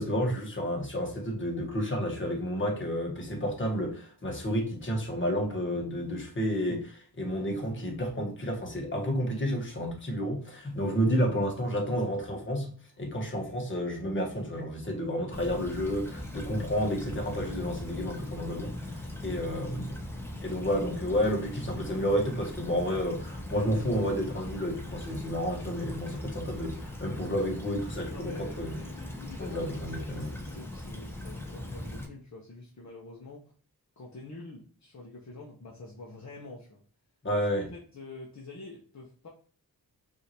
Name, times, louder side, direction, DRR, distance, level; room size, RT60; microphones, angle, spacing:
voice 1, 0.0-20.0 20.4-28.8 29.4-30.3 37.2-37.7, equal, 30° left, 1.4 m, -31 dB
voice 2, 10.9-11.3 28.1-33.5 34.0-36.8 37.5-39.3, left 3 dB, 50° left, 1.0 m, -46 dB
Stream / Trickle dribble, 15.3-32.1, left 1 dB, 5° left, 1.0 m, -40 dB
5.5 x 2.9 x 2.9 m
wide cardioid pair, 95°, 36 cm